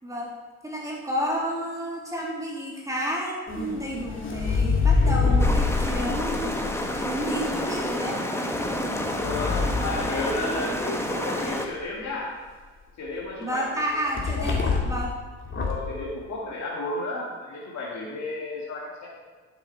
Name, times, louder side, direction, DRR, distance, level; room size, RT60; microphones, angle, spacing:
voice 1, 0.6-6.6 6.9-8.2 13.4-15.1, equal, 10° right, -3 dB, 3.0 m, -31 dB
sound 1, 3.5-7.6 8.5-10.9 14.2-15.1 15.4-15.9, left 4 dB, 40° left, 2.5 m, -26 dB
sound 2, 5.4-11.7, left 1 dB, 10° left, 1.4 m, -29 dB
voice 2, 9.1-12.3 13.0-14.6 15.6-19.1, left 2 dB, 60° left, -6 dB, 2.4 m, -33 dB
12.0 x 7.6 x 4.8 m, 1.4 s
cardioid pair, 90°, 30 cm